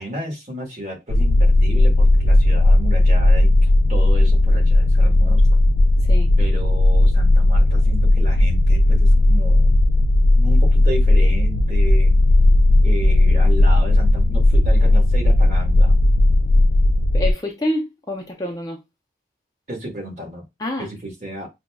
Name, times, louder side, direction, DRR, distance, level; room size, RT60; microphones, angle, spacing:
voice 1, 0.0-5.6 6.4-9.8 10.3-12.2 12.8-16.0 19.7-20.4 20.8-21.5, right 1 dB, 40° right, 1.3 m, -33 dB
sound 1, 1.1-17.3, left 1 dB, 80° left, 0.3 m, -15 dB
voice 2, 17.1-18.8 20.6-20.9, left 1 dB, 20° left, 0.5 m, -27 dB
5.1 x 2.2 x 2.2 m
head